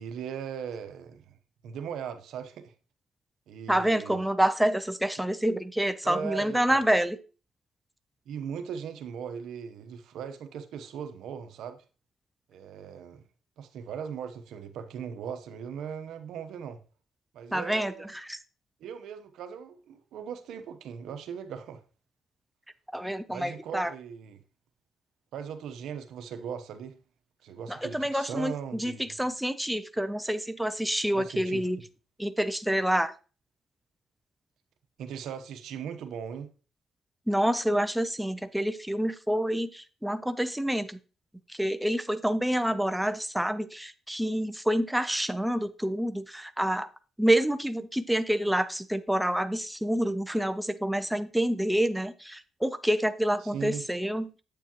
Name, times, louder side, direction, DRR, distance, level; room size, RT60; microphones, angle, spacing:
voice 1, 0.0-1.3 1.6-2.7 3.5-4.2 6.0-6.8 8.3-11.8 12.5-13.2 13.6-16.8 17.3-18.1 18.8-21.8 23.3-24.4 25.3-27.0 27.4-29.2 31.1-31.7 35.0-36.5 53.4-53.8, right 7 dB, 80° right, 0.8 m, -39 dB
voice 2, 3.7-7.2 17.5-18.4 22.9-23.9 27.7-31.8 32.2-33.1 37.3-41.0 41.5-46.9 47.2-54.3, right 1 dB, 5° right, 0.5 m, -27 dB
8.2 x 6.9 x 2.9 m
cardioid pair, 90°, 0 cm